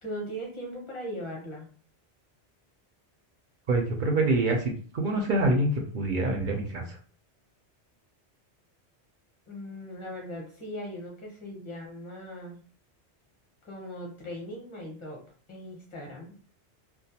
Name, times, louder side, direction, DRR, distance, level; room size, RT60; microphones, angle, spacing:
voice 1, 0.0-1.7 9.5-12.6 13.6-15.2 15.5-16.3, equal, 30° left, -1 dB, 0.8 m, -39 dB
voice 2, 3.7-7.0, right 2 dB, 60° right, 2 dB, 0.6 m, -26 dB
2.3 x 2.2 x 2.7 m, 0.42 s
omnidirectional pair, 1.2 m